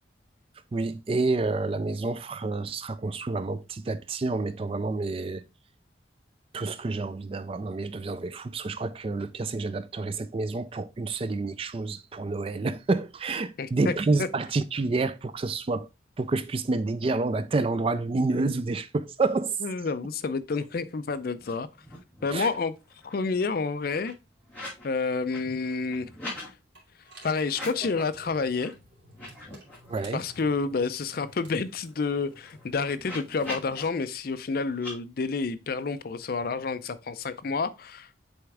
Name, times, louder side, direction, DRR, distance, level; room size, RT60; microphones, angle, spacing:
voice 1, 0.7-5.4 6.5-15.9 16.2-19.6 22.3-22.5 29.9-30.2, right 3 dB, 30° right, 0.3 m, -28 dB
voice 2, 13.6-13.9 14.2-14.3 19.6-21.7 22.2-22.7 23.0-24.1 24.8-26.4 27.2-28.7 30.1-38.2, left 4 dB, 50° left, 0.4 m, -29 dB
sound 1, 21.4-21.5 21.8-22.4 22.8-24.9 25.2-26.5 27.4-28.2 28.6-28.7 29.1-30.4 30.8-30.9 31.2-33.8 34.7-34.9, left 2 dB, 5° left, 2.7 m, -43 dB
sound 2, 26.8-33.8, right 2 dB, 70° right, 2.4 m, -52 dB
7.9 x 3.5 x 3.4 m
head